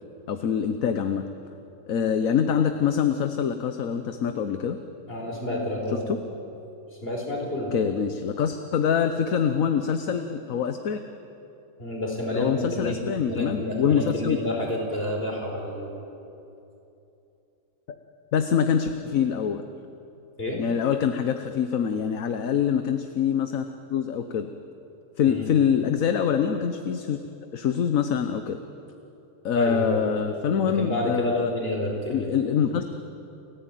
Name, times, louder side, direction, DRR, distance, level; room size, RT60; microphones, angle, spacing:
voice 1, 0.3-1.2 1.9-4.8 6.1-6.2 7.7-11.0 12.3-14.4 17.9-18.0 18.3-19.6 20.6-23.6 23.9-24.5 25.2-27.2 27.5-28.6 29.4-31.5 32.1-32.8, left 8 dB, 60° left, 8 dB, 1.3 m, -25 dB
voice 2, 5.1-6.2 6.6-7.9 11.8-13.0 13.2-15.9 16.3-16.4 20.4-20.6 25.3-25.5 29.6-30.2 30.6-32.3, left 1 dB, 35° left, 0 dB, 5.1 m, -29 dB
29.5 x 14.5 x 9.1 m, 2.8 s
omnidirectional pair, 1.7 m